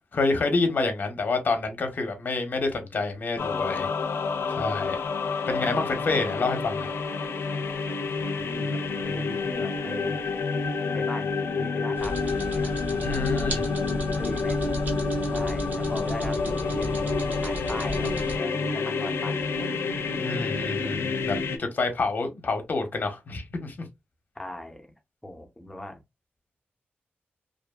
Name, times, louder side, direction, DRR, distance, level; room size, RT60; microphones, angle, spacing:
voice 1, 0.1-3.9 4.5-5.0 5.5-6.9 13.0-13.6 20.2-23.8, left 3 dB, 45° left, 0.7 m, -28 dB
sound 1, 3.4-21.6, left 4 dB, 85° left, 0.4 m, -28 dB
voice 2, 8.3-10.2 10.9-12.7 14.0-14.6 15.3-19.7 24.4-24.9 25.2-26.0, left 1 dB, 5° left, 0.6 m, -39 dB
sound 2, 11.9-18.4, right 1 dB, 45° right, 0.8 m, -35 dB
2.5 x 2.5 x 2.2 m
wide cardioid pair, 150°, 4 cm